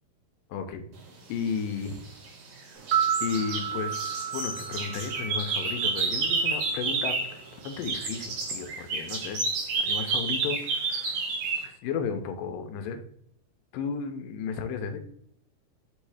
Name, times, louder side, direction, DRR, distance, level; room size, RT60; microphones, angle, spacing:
voice 1, 0.5-0.8 1.3-2.0 3.2-9.4 9.8-11.3 11.6-13.0 13.7-15.0, left 6 dB, 80° left, 7 dB, 2.4 m, -34 dB
sound 1, 1.7-2.5 2.9-7.4 7.6-11.6, right 4 dB, 80° right, 3.2 m, -30 dB
sound 2, 2.8-6.9 7.2-7.3, right 8 dB, 65° right, 1.8 m, -32 dB
6.3 x 3.2 x 4.8 m, 0.68 s
omnidirectional pair, 3.9 m